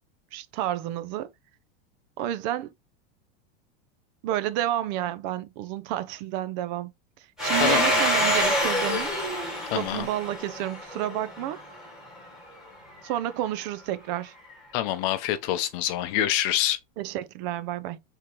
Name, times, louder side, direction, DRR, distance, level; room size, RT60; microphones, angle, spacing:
voice 1, 0.3-1.3 2.2-2.7 4.2-6.9 7.4-9.2 9.7-11.6 13.0-14.3 17.0-18.0, right 13 dB, 50° right, 0.5 m, -30 dB
Domestic sounds home sounds, 7.4-11.8, equal, ahead, 1.2 m, -26 dB
voice 2, 7.6-8.0 9.7-10.1 14.7-16.8, left 12 dB, 50° left, 0.7 m, -26 dB
3.6 x 2.9 x 3.0 m
supercardioid pair, 140°, 29 cm